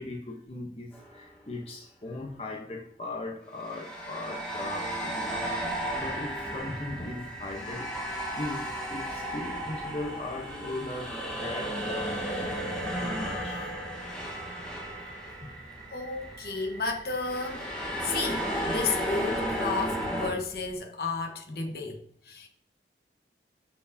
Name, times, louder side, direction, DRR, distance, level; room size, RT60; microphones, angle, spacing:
voice 1, 0.0-13.7 15.4-15.5, left 2 dB, 35° left, 0.9 m, -39 dB
sound 1, 0.9-1.2 3.6-16.5 17.2-20.3, equal, 5° left, 1.6 m, -34 dB
sound 2, 6.0-20.8, right 2 dB, 60° right, 2.1 m, -47 dB
voice 2, 15.9-17.7 18.0-22.5, left 4 dB, 60° left, 1.1 m, -33 dB
12.5 x 4.5 x 2.7 m
head